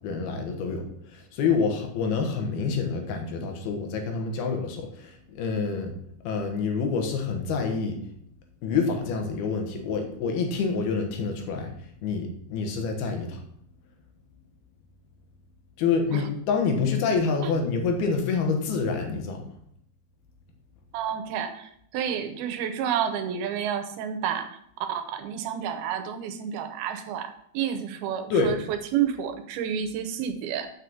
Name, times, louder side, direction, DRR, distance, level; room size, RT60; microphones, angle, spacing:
voice 1, 0.0-6.0 6.2-8.0 8.6-11.7 12.0-13.4 15.8-19.5 28.3-28.5, left 5 dB, 75° left, 4 dB, 3.3 m, -27 dB
voice 2, 20.9-30.7, right 9 dB, 80° right, 8 dB, 2.7 m, -30 dB
7.8 x 6.5 x 7.0 m, 0.68 s
omnidirectional pair, 4.4 m